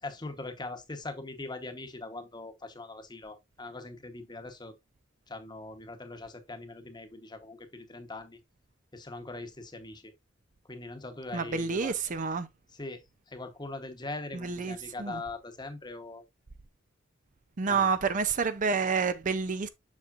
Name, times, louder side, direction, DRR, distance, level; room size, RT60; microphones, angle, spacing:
voice 1, 0.0-4.7 5.3-8.4 8.9-10.1 10.7-12.0 12.7-16.2 17.7-17.9, left 2 dB, 20° left, 1.0 m, -41 dB
voice 2, 11.3-12.5 14.3-15.2 17.6-19.7, right 5 dB, 40° right, 0.5 m, -29 dB
7.2 x 6.3 x 2.5 m
head